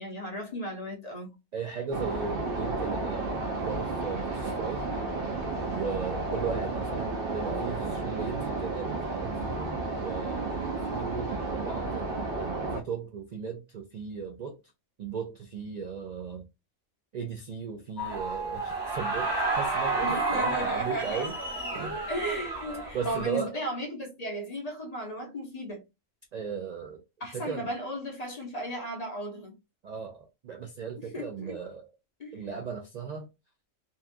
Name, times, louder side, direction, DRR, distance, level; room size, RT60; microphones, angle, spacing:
voice 1, 0.0-1.3 20.0-21.3 22.1-25.8 27.2-29.5 31.0-31.6 32.2-32.4, equal, 40° left, 0.7 m, -35 dB
voice 2, 1.5-4.9 5.7-10.6 10.9-14.6 15.0-16.5 17.1-21.3 21.7-22.0 22.9-23.5 26.3-27.0 27.3-27.7 29.8-31.8 32.3-33.3, right 6 dB, 80° right, 0.3 m, -37 dB
sound 1, 1.9-12.8, right 3 dB, 55° right, 0.8 m, -32 dB
sound 2, 18.0-23.3, right 3 dB, 20° right, 0.8 m, -31 dB
2.8 x 2.3 x 2.4 m
omnidirectional pair, 1.3 m